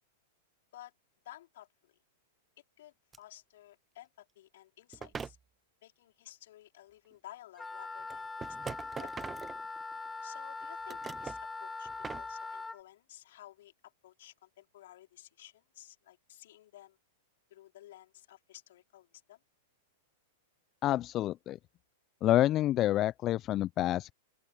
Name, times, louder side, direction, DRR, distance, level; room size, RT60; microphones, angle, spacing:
voice 1, 1.2-2.0 2.8-5.4 5.8-9.3 10.2-11.9 12.1-17.0 17.5-19.4, left 14 dB, 65° left, 4.8 m, -54 dB
sound 1, 3.1-3.2 4.9-5.4 7.1-7.2 8.1-10.1 10.6-11.4 11.9-12.3, right 5 dB, 20° right, 1.0 m, -42 dB
Wind instrument woodwind instrument, 7.5-12.8, left 3 dB, 10° left, 3.7 m, -41 dB
voice 2, 20.8-21.6 22.2-24.1, left 14 dB, 35° left, 0.5 m, -28 dB
open air
hypercardioid pair, 105°, 0 cm